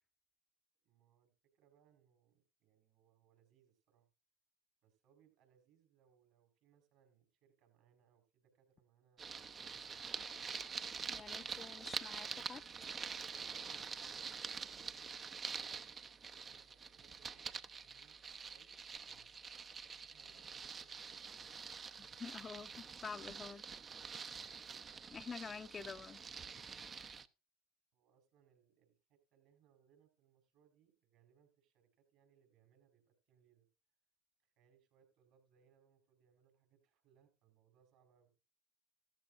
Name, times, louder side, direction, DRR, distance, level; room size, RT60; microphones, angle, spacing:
voice 1, 0.8-4.1 4.8-10.4 11.2-12.1 13.6-15.6 15.9-19.5 20.0-21.5 27.9-33.7 34.4-38.3, right 8 dB, 60° right, 4.6 m, -73 dB
sound 1, 9.2-27.3, right 5 dB, 30° right, 0.7 m, -46 dB
voice 2, 11.1-12.6 22.0-23.6 25.1-26.2, left 5 dB, 30° left, 0.7 m, -48 dB
14.5 x 13.5 x 2.6 m
hypercardioid pair, 75°, 0 cm